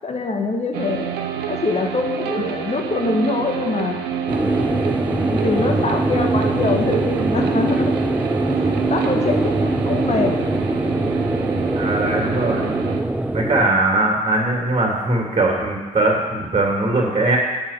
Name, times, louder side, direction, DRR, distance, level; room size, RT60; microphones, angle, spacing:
voice 1, 0.0-1.1 1.5-4.0 4.4-4.6 5.3-7.9 8.6-10.3, left 3 dB, 35° left, 3 dB, 1.5 m, -23 dB
sound 1, 0.7-13.0, right 9 dB, 65° right, 0.8 m, -28 dB
sound 2, 4.3-13.7, right 2 dB, 5° right, 0.6 m, -22 dB
voice 2, 11.7-12.7 13.3-17.4, right 2 dB, 30° right, -1 dB, 2.5 m, -20 dB
7.2 x 6.4 x 6.6 m, 1.3 s
figure-of-eight pair, 40°, 19 cm